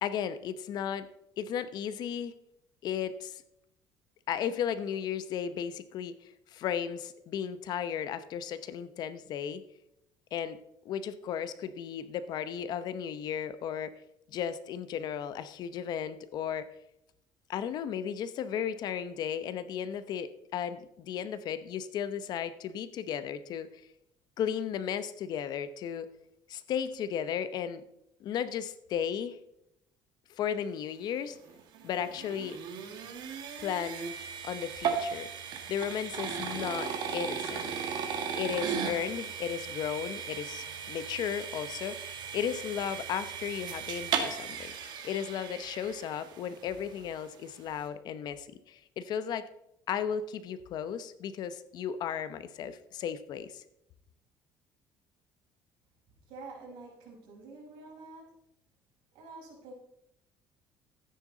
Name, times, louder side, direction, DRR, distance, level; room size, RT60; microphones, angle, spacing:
voice 1, 0.0-1.1 1.4-2.3 2.8-3.4 4.3-9.6 10.3-10.6 10.8-14.0 14.3-16.7 17.5-23.7 24.4-26.1 26.5-27.8 28.2-29.4 30.3-31.4 31.8-32.6 33.6-34.2 34.4-35.3 35.7-37.7 38.4-49.5 49.9-53.6, left 8 dB, 55° left, 13 dB, 0.8 m, -35 dB
sound 1, 31.4-46.6, right 7 dB, 65° right, 1.8 m, -36 dB
voice 2, 56.3-58.2 59.1-59.7, right 3 dB, 85° right, -2 dB, 5.2 m, -47 dB
13.5 x 9.4 x 3.9 m, 0.79 s
cardioid pair, 140°, 8 cm